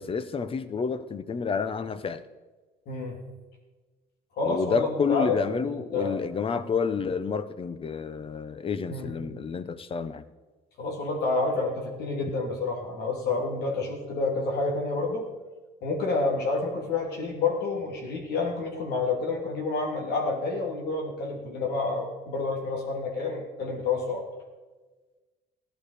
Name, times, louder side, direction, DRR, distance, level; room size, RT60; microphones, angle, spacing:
voice 1, 0.0-2.2 4.4-10.2, left 5 dB, 35° left, 14 dB, 0.8 m, -29 dB
voice 2, 2.9-3.2 4.4-6.1 8.9-9.1 10.8-15.3 15.8-24.2, left 3 dB, 70° left, 0 dB, 3.0 m, -29 dB
15.5 x 11.5 x 5.0 m, 1.3 s
cardioid pair, 110°, 17 cm